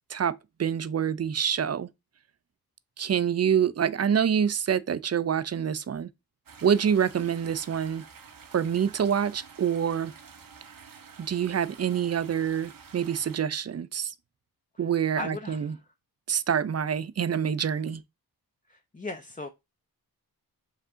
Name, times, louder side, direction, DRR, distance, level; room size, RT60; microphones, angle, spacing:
voice 1, 0.6-1.9 3.0-6.1 6.6-8.0 8.5-10.1 11.2-14.1 14.8-15.7 16.3-18.0, right 8 dB, 40° right, 0.5 m, -26 dB
sound 1, 6.5-13.4, right 6 dB, 60° right, 0.8 m, -49 dB
voice 2, 15.2-15.8 18.7-19.5, left 2 dB, 20° left, 0.6 m, -38 dB
4.9 x 2.7 x 3.6 m
cardioid pair, 50°, 39 cm